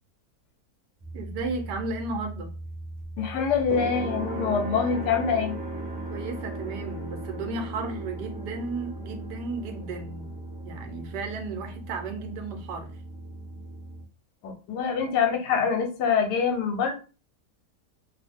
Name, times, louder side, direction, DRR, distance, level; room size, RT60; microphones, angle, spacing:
sound 1, 1.0-14.0, right 2 dB, 25° right, 0.5 m, -37 dB
voice 1, 1.1-2.5 6.1-10.3 10.6-12.9, right 3 dB, 85° right, 1.3 m, -34 dB
voice 2, 3.2-5.6 14.4-16.9, left 6 dB, 80° left, 1.3 m, -25 dB
2.7 x 2.7 x 3.4 m
omnidirectional pair, 1.8 m